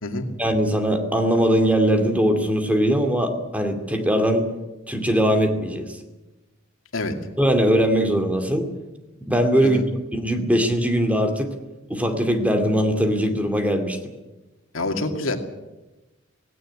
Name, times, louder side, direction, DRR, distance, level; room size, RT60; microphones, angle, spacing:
voice 1, 0.4-4.5 4.9-6.0 7.4-8.7 9.3-9.8 10.1-11.5 11.9-14.0, equal, 5° right, 5 dB, 2.5 m, -21 dB
voice 2, 14.7-15.4, left 2 dB, 75° left, 5 dB, 2.4 m, -26 dB
17.5 x 17.5 x 9.9 m, 1.1 s
head